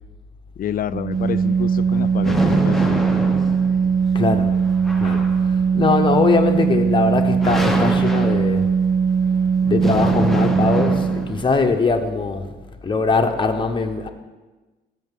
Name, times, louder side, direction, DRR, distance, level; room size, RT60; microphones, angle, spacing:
voice 1, 0.6-3.0, left 10 dB, 45° left, 0.4 m, -28 dB
Organ, 0.9-11.5, right 6 dB, 45° right, 0.4 m, -20 dB
sound 1, 1.1-11.5, equal, ahead, 0.9 m, -27 dB
voice 2, 4.1-4.6 5.0-8.7 9.6-12.5 12.8-14.1, left 4 dB, 25° left, 0.9 m, -21 dB
14.0 x 5.7 x 3.7 m
cardioid pair, 90°, 20 cm